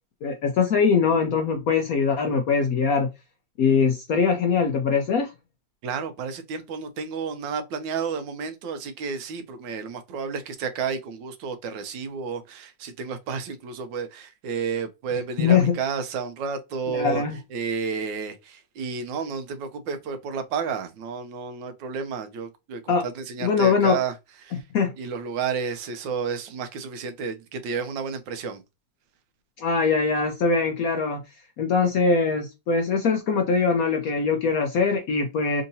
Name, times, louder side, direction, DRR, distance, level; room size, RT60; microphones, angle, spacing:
voice 1, 0.2-3.1 3.6-5.3 15.4-15.8 16.9-17.4 22.9-23.0 23.4-24.0 24.7-24.9 29.6-31.2 31.6-35.6, left 5 dB, 70° left, 0.8 m, -22 dB
voice 2, 5.8-17.2 17.5-24.1 24.4-24.6 25.0-28.6, right 6 dB, 75° right, 1.3 m, -31 dB
3.7 x 2.8 x 2.6 m
omnidirectional pair, 2.0 m